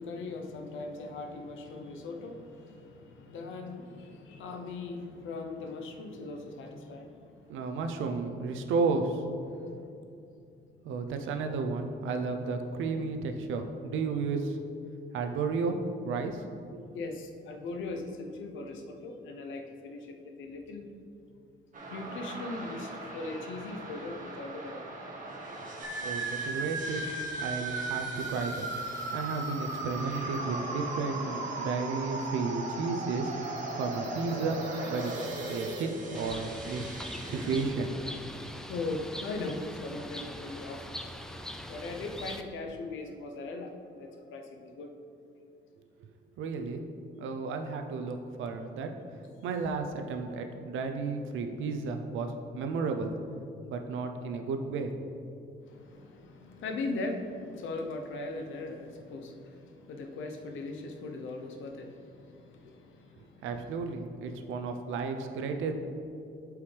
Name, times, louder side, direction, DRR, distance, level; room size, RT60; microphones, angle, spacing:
voice 1, 0.0-7.8 9.5-10.0 16.9-20.9 21.9-24.9 38.7-40.9 41.7-44.9 55.6-63.5 64.4-64.5, left 3 dB, 80° left, 4 dB, 0.8 m, -39 dB
voice 2, 7.5-9.2 10.8-14.6 15.1-15.8 16.0-16.4 26.0-27.0 27.4-28.7 29.1-33.3 33.8-37.9 46.4-46.8 47.2-48.9 49.4-53.1 53.7-55.1 63.4-65.7, right 4 dB, 85° right, 5 dB, 0.6 m, -33 dB
sound 1, 21.7-37.7, right 2 dB, 40° right, 1.5 m, -43 dB
sound 2, 25.8-35.8, right 3 dB, 70° right, 1.2 m, -36 dB
Bird, 36.1-42.4, equal, 5° left, 0.4 m, -42 dB
8.4 x 4.8 x 3.3 m, 2.6 s
cardioid pair, 90°, 20 cm